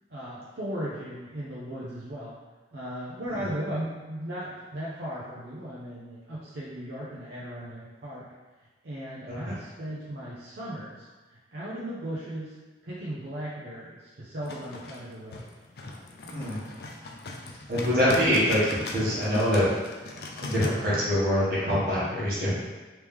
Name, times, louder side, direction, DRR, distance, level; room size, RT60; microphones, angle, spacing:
voice 1, 0.1-2.3 2.7-8.3 8.8-12.6 12.8-15.4, right 1 dB, 75° right, -8 dB, 0.6 m, -37 dB
sound 1, 14.5-20.7, left 2 dB, 60° left, 0.4 m, -38 dB
voice 2, 16.2-16.6 17.7-19.6 20.4-22.5, equal, 55° right, -8 dB, 1.3 m, -25 dB
3.2 x 3.0 x 3.5 m, 1.3 s
head